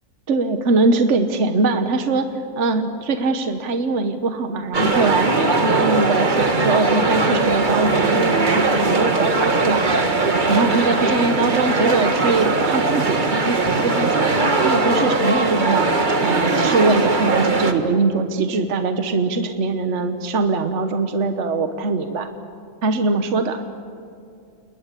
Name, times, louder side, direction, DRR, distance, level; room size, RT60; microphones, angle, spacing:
voice 1, 0.3-2.3 2.6-5.3 5.6-10.0 10.5-14.3 14.6-15.9 16.2-22.3 22.8-23.6, right 3 dB, 60° right, 8 dB, 1.4 m, -22 dB
sound 1, 4.7-17.7, right 3 dB, 35° right, 1.7 m, -19 dB
28.5 x 21.5 x 8.3 m, 2.5 s
omnidirectional pair, 1.4 m